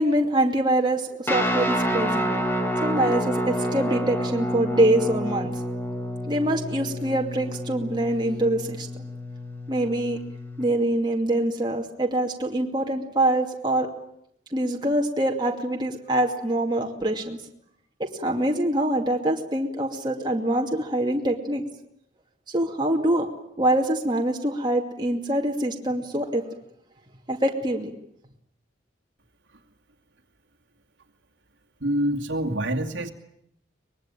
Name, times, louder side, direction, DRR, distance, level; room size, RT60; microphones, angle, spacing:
voice 1, 0.0-2.3 2.8-5.5 6.3-9.0 9.7-10.2 10.6-13.9 14.5-17.4 18.0-21.6 22.5-23.3 23.6-26.5 27.3-27.9, right 1 dB, 25° right, 1 dB, 2.5 m, -24 dB
Guitar, 1.3-10.6, equal, 10° left, 2.4 m, -28 dB
voice 2, 31.8-33.1, right 1 dB, 75° right, 2 dB, 2.5 m, -26 dB
24.0 x 21.5 x 9.0 m, 0.77 s
head